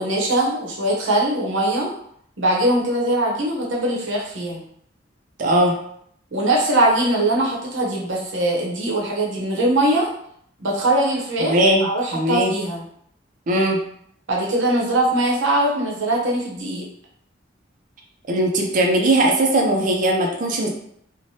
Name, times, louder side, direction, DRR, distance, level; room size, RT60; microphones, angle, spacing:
voice 1, 0.0-1.9 2.4-4.6 6.3-10.1 10.6-12.8 14.3-16.9, right 1 dB, 80° right, -2 dB, 0.8 m, -21 dB
voice 2, 5.4-5.8 11.4-11.9 12.1-12.5 13.5-13.8 18.3-20.7, right 1 dB, 45° right, 1 dB, 0.4 m, -19 dB
3.1 x 2.1 x 2.6 m, 0.68 s
head